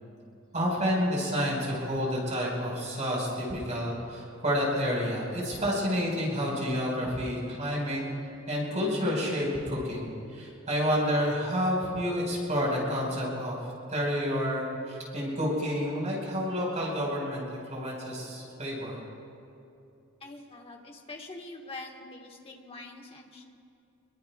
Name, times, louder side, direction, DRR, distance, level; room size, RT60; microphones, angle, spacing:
voice 1, 0.5-8.0 8.5-13.5 13.9-19.0, equal, 35° right, -3 dB, 5.0 m, -29 dB
voice 2, 20.2-23.5, left 2 dB, 30° left, 1 dB, 1.6 m, -44 dB
26.5 x 22.5 x 2.4 m, 2.7 s
head